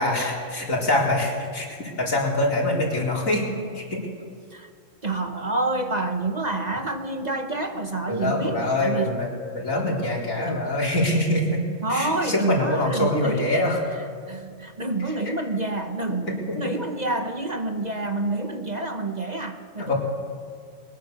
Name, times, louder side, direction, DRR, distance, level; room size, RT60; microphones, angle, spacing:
voice 1, 0.0-3.5 3.7-4.0 8.1-13.8 15.0-15.1 16.1-16.8 19.8-19.9, left 1 dB, 80° left, -2 dB, 4.4 m, -24 dB
voice 2, 5.0-9.1 10.4-10.5 11.8-13.5 14.3-16.3 16.5-19.9, right 2 dB, 35° right, 6 dB, 1.2 m, -28 dB
22.0 x 20.5 x 6.7 m, 2.1 s
omnidirectional pair, 1.4 m